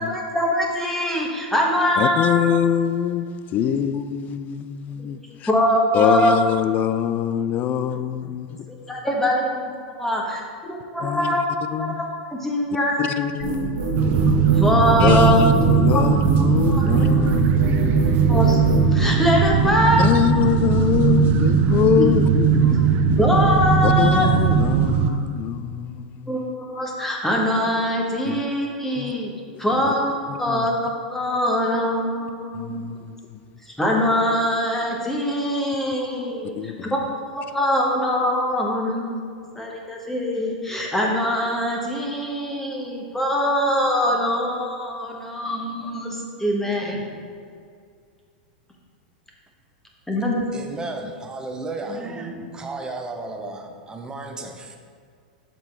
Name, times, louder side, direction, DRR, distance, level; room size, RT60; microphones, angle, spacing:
voice 1, 0.0-2.4 3.6-3.8 5.0-5.1 5.4-6.4 8.9-10.2 10.9-11.4 11.8-11.9 12.3-13.1 14.0-14.2 14.5-15.4 15.9-16.0 16.7-16.8 18.3-18.6 18.9-20.1 22.0-22.1 23.2-24.3 26.3-29.3 29.6-32.9 33.8-37.0 37.3-39.2 39.5-47.1 50.1-50.4 52.0-52.4, equal, 5° left, 1.5 m, -23 dB
voice 2, 2.0-5.5 5.9-8.8 11.0-11.4 11.7-12.0 13.0-14.0 15.0-18.2 20.0-23.0 23.8-26.4 28.2-28.4 29.0-29.1 29.8-29.9 30.3-30.7 32.5-33.4 36.5-36.9, left 9 dB, 40° left, 0.5 m, -24 dB
sound 1, 13.4-18.9, right 3 dB, 75° right, 1.5 m, -26 dB
sound 2, 14.0-25.1, right 6 dB, 40° right, 0.6 m, -19 dB
voice 3, 50.5-54.8, right 2 dB, 15° right, 0.9 m, -33 dB
7.2 x 5.4 x 4.8 m
hypercardioid pair, 105°, 4 cm